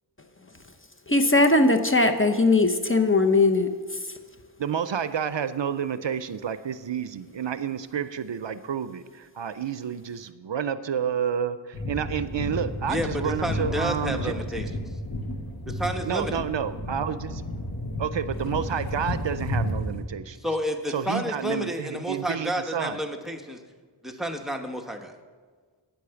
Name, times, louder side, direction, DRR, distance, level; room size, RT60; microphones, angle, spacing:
voice 1, 1.1-3.7, left 2 dB, 25° left, 0.8 m, -19 dB
voice 2, 4.6-14.7 16.0-17.4 18.0-20.4 20.9-23.0, right 8 dB, 70° right, 0.5 m, -30 dB
sound 1, 11.7-20.0, left 1 dB, 50° left, 1.3 m, -32 dB
voice 3, 12.9-14.7 15.7-16.4 20.4-23.6 24.0-25.1, equal, ahead, 1.1 m, -30 dB
9.2 x 8.3 x 6.9 m
wide cardioid pair, 45°, 47 cm